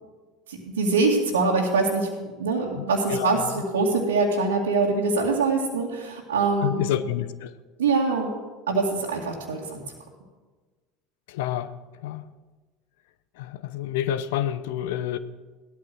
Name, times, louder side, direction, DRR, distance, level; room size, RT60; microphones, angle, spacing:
voice 1, 0.5-2.1 2.4-6.9 7.8-8.3 8.7-9.8, right 3 dB, 85° right, 2.3 m, -24 dB
voice 2, 3.1-3.4 6.6-7.5 11.3-11.7 12.0-12.2 13.4-15.2, left 11 dB, 75° left, 0.7 m, -28 dB
17.0 x 13.5 x 6.2 m
hypercardioid pair, 75°, 0 cm